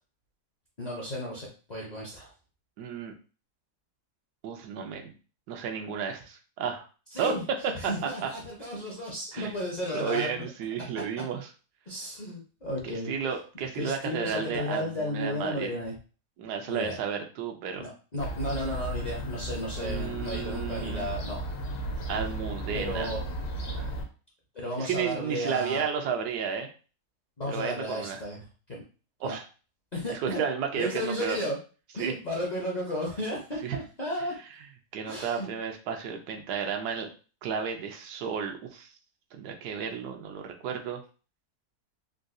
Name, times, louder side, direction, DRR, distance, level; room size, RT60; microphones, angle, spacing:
voice 1, 0.8-2.3 7.1-10.3 11.9-13.1 13.7-15.9 16.7-17.0 17.8-21.4 22.7-23.2 24.5-25.9 27.4-28.4 28.7-28.8 29.2-29.3 29.9-30.4 30.7-31.6 31.9-34.3 35.0-35.5, left 1 dB, 50° left, -5 dB, 0.5 m, -34 dB
voice 2, 2.8-3.1 4.4-5.1 5.5-6.9 7.2-7.4 7.8-8.3 9.3-9.6 9.9-11.5 12.8-15.7 16.4-17.9 19.8-21.1 22.1-23.1 23.8-23.9 24.8-26.7 27.5-28.2 29.2-29.4 30.1-31.4 32.0-32.1 33.6-33.8 34.9-37.1 37.4-38.9 39.3-41.0, right 7 dB, 85° right, 4 dB, 1.2 m, -33 dB
Fowl / Gull seagull, 18.2-24.0, right 1 dB, 75° left, 1.3 m, -34 dB
3.7 x 2.3 x 2.5 m, 0.36 s
omnidirectional pair, 1.7 m